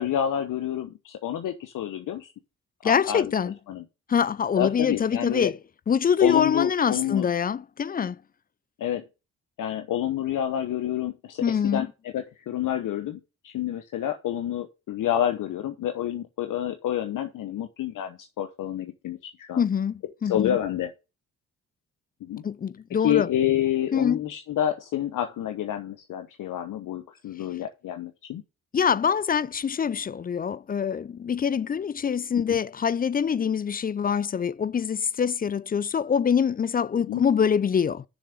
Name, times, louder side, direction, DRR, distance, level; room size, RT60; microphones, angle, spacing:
voice 1, 0.0-2.3 2.8-3.3 3.7-3.8 4.6-5.5 6.2-7.3 8.8-9.0 9.6-11.9 12.1-19.6 20.2-20.9 22.2-22.4 23.0-28.4 32.4-32.6 37.1-37.2, left 11 dB, 50° left, 0.9 m, -28 dB
voice 2, 2.8-3.5 4.1-5.6 5.9-8.2 11.4-11.9 19.6-20.6 22.4-23.3 23.9-24.2 28.7-38.0, left 7 dB, 25° left, 0.4 m, -24 dB
6.7 x 6.3 x 6.7 m
figure-of-eight pair, 40°, 40 cm